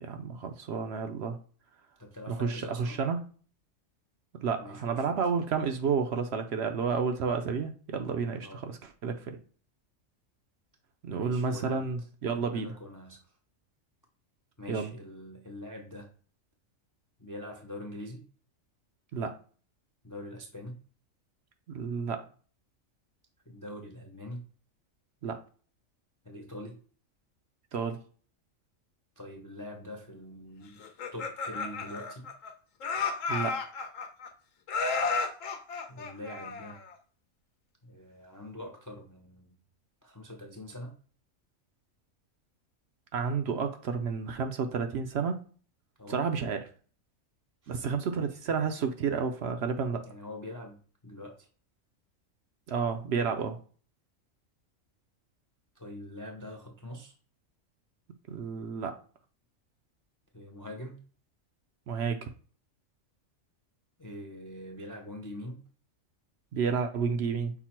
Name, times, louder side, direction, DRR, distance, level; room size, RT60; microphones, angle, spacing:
voice 1, 0.0-1.4 2.3-3.2 4.4-9.4 11.0-12.7 14.7-14.9 19.1-19.3 21.7-22.2 25.2-25.4 27.7-28.0 33.3-33.6 43.1-45.4 46.1-46.7 47.7-50.1 52.7-53.6 58.3-58.9 61.9-62.3 66.5-67.5, right 5 dB, 65° right, 6 dB, 0.8 m, -31 dB
voice 2, 2.0-3.0 4.6-5.2 8.4-8.6 11.1-11.9 12.3-13.2 14.6-16.1 17.2-18.2 20.0-20.8 23.5-24.4 26.2-26.8 29.2-30.8 31.1-32.3 35.9-36.8 37.8-39.6 40.0-40.9 46.0-46.2 47.6-47.7 50.0-51.5 55.8-57.1 60.3-61.0 64.0-65.6, left 1 dB, 30° left, 1 dB, 0.3 m, -44 dB
Laughter, 30.8-32.5 32.8-34.3 34.7-36.9, left 4 dB, 80° left, 1.1 m, -33 dB
5.9 x 2.1 x 4.3 m, 0.41 s
omnidirectional pair, 1.4 m